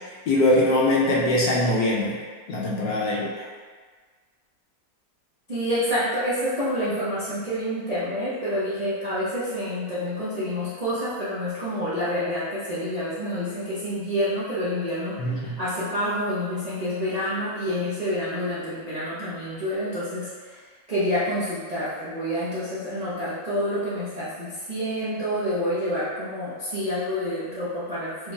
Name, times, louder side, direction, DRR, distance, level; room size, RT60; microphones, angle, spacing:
voice 1, 0.3-2.2 2.5-3.4 15.2-15.6, left 1 dB, 70° left, -4 dB, 1.1 m, -22 dB
voice 2, 5.5-20.6 20.9-28.3, equal, 65° right, -12 dB, 0.4 m, -28 dB
4.6 x 3.0 x 2.3 m, 1.5 s
omnidirectional pair, 2.1 m